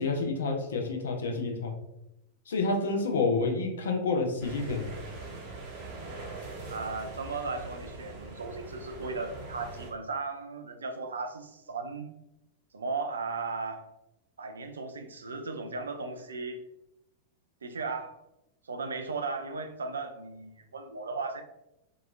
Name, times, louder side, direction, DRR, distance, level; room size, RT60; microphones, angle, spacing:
voice 1, 0.0-1.7 2.5-4.9, left 3 dB, 65° left, 3 dB, 0.4 m, -29 dB
sound 1, 4.4-9.9, right 3 dB, 50° right, 0.7 m, -42 dB
voice 2, 6.7-12.1 12.7-13.9 14.4-16.6 17.6-18.2 18.6-21.4, right 4 dB, 70° right, 7 dB, 0.3 m, -36 dB
2.8 x 2.3 x 2.3 m, 0.87 s
figure-of-eight pair, 90°, 0 cm